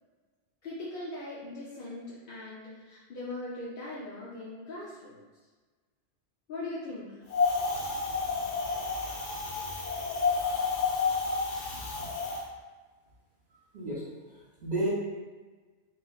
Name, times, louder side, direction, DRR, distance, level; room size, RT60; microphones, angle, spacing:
voice 1, 0.6-5.2 6.5-7.2, left 2 dB, 55° left, -7 dB, 0.7 m, -40 dB
Wind, 7.3-12.4, left 4 dB, 80° left, 1.0 m, -30 dB
voice 2, 14.3-14.9, right 1 dB, 50° right, -10 dB, 0.9 m, -32 dB
4.0 x 2.8 x 2.3 m, 1.3 s
omnidirectional pair, 1.2 m